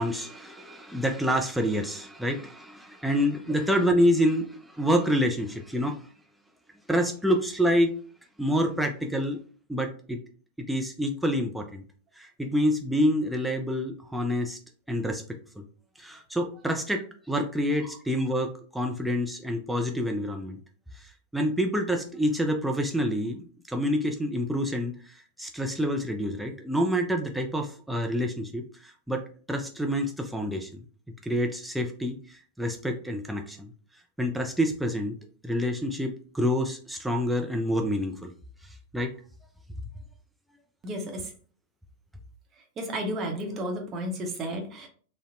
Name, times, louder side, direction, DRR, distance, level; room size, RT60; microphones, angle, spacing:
voice 1, 0.0-6.1 6.9-7.9 8.4-9.4 9.7-10.2 10.7-11.8 12.2-14.6 14.9-15.2 16.0-20.6 20.9-30.8 31.2-33.7 34.2-35.1 35.4-38.3 38.6-39.1, equal, 5° right, 2 dB, 0.3 m, -27 dB
voice 2, 40.8-41.3 42.8-44.9, equal, 30° right, 2 dB, 0.7 m, -32 dB
3.8 x 2.1 x 2.5 m, 0.43 s
figure-of-eight pair, 90°, 0 cm